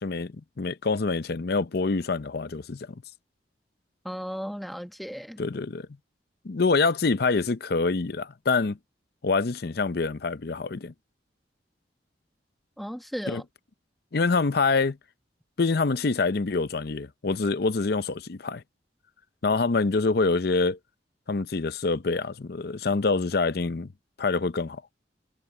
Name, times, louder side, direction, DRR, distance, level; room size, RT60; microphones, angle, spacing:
voice 1, 0.0-2.9 5.4-5.9 6.4-8.8 9.2-10.9 13.3-13.4 14.1-15.0 15.6-18.6 19.4-20.8 21.3-23.9 24.2-24.8, left 4 dB, 55° left, 0.6 m, -26 dB
voice 2, 4.0-5.4 12.8-13.4, equal, ahead, 1.3 m, -35 dB
head